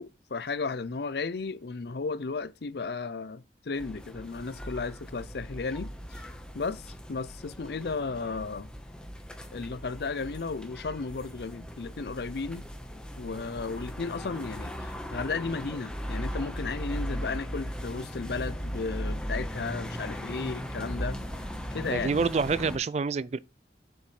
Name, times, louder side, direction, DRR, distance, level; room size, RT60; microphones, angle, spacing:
voice 1, 0.0-6.3 6.5-8.7 9.5-12.6 13.2-21.2 21.7-22.1, left 4 dB, 65° left, 0.5 m, -34 dB
sound 1, 3.7-22.8, equal, 5° left, 1.1 m, -38 dB
voice 2, 21.9-23.4, right 4 dB, 35° right, 0.3 m, -27 dB
7.3 x 7.0 x 3.2 m
head